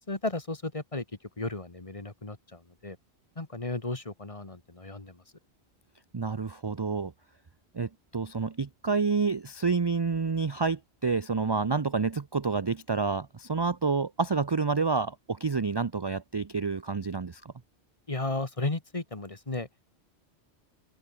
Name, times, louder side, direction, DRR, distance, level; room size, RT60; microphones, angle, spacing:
voice 1, 0.1-1.1 1.4-3.0 3.4-5.2 18.1-19.9, left 2 dB, 30° left, 1.9 m, -34 dB
voice 2, 6.1-7.1 7.7-17.5, right 4 dB, 30° right, 0.5 m, -29 dB
omnidirectional pair, 1.1 m